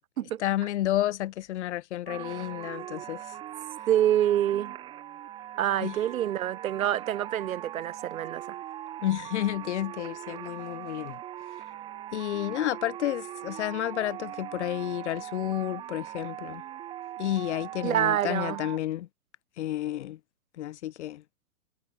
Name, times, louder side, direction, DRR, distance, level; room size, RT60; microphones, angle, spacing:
voice 1, 0.4-3.2 5.8-6.0 9.0-11.2 12.1-16.6 17.2-19.1 19.6-20.2 20.6-21.2, left 13 dB, 50° left, 1.7 m, -31 dB
sound 1, 2.1-18.8, right 12 dB, 10° right, 0.8 m, -40 dB
voice 2, 3.9-4.7 5.6-8.6 17.8-18.6, right 11 dB, 65° right, 1.4 m, -26 dB
hypercardioid pair, 160°, 45 cm